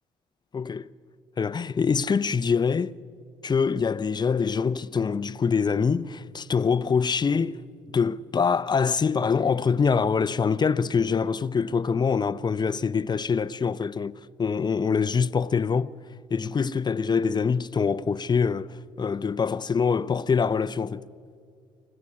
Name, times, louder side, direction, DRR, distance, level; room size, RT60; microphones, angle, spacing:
voice 1, 0.5-0.9 1.4-2.9 3.4-7.5 7.9-15.9 16.3-21.0, left 5 dB, 30° left, 0.7 m, -24 dB
25.0 x 15.5 x 9.8 m
supercardioid pair, 70°, 15 cm